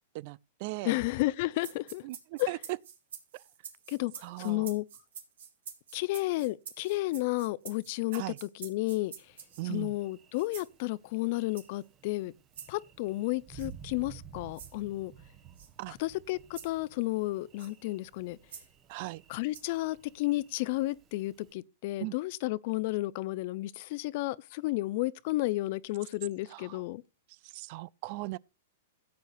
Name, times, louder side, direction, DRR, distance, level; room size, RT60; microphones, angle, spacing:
voice 1, 0.1-1.0 2.0-2.6 3.3-3.4 4.2-4.7 8.1-8.4 9.6-10.0 15.8-16.0 18.9-19.2 22.0-22.1 26.5-26.8 27.3-28.4, right 20 dB, 50° right, 0.4 m, -39 dB
voice 2, 0.8-2.0 2.4-2.5 3.9-4.9 5.9-9.1 9.6-12.3 12.7-15.1 15.9-18.4 19.3-27.0, left 19 dB, 55° left, 0.6 m, -32 dB
sound 1, 1.6-9.8 10.3-10.7 11.5-11.8 12.5-12.7 13.6-13.7 14.5-14.8 15.6-15.7 16.5-16.8 17.6-17.7 18.5-18.7 19.5-19.8, right 7 dB, 80° right, 3.3 m, -47 dB
Thunder, 9.2-21.5, right 8 dB, 30° right, 1.2 m, -54 dB
16.5 x 8.4 x 2.6 m
hypercardioid pair, 130°, 0 cm